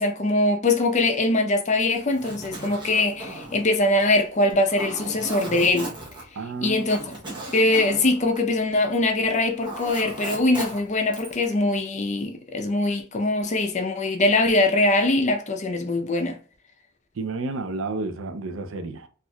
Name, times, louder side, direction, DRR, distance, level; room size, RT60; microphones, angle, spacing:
voice 1, 0.0-5.9 6.6-7.0 7.5-16.4, left 2 dB, 35° left, 0.5 m, -22 dB
Zipper (clothing), 2.0-9.1 9.4-11.5, right 1 dB, 20° right, 0.8 m, -37 dB
voice 2, 6.3-6.9 17.2-19.1, right 3 dB, 60° right, 0.5 m, -31 dB
4.3 x 2.4 x 2.2 m
head